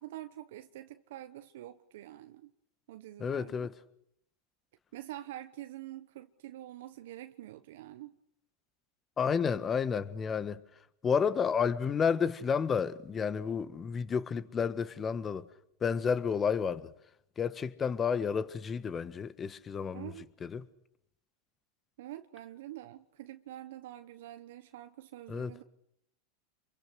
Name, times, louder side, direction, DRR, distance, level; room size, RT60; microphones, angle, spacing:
voice 1, 0.0-2.5 2.9-3.7 4.9-8.2 19.9-20.3 22.0-25.6, right 14 dB, 70° right, 1.1 m, -46 dB
voice 2, 3.2-3.7 9.2-10.6 11.0-15.4 15.8-16.9 17.4-20.1 20.4-20.6 25.3-25.5, left 6 dB, 25° left, 1.6 m, -31 dB
28.5 x 23.0 x 6.6 m
hypercardioid pair, 100°, 0 cm